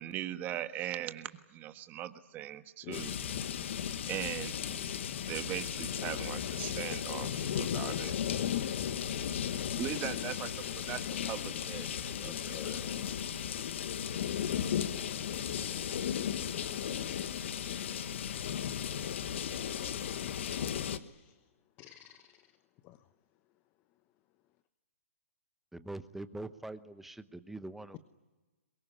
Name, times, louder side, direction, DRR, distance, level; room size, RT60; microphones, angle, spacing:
voice 1, 0.0-3.1 4.1-4.9 5.3-8.1 9.8-10.5 10.9-12.8, right 12 dB, 25° right, 9 dB, 1.4 m, -40 dB
sound 1, 2.9-21.0, left 9 dB, 55° left, 1.3 m, -35 dB
voice 2, 12.2-12.8 18.3-18.4 20.9-21.4 21.8-22.5 22.8-23.0, left 15 dB, 30° left, 12 dB, 0.9 m, -48 dB
voice 3, 25.7-28.0, right 2 dB, 5° right, 12 dB, 1.0 m, -43 dB
23.0 x 21.5 x 9.7 m, 1.2 s
hypercardioid pair, 135°, 8 cm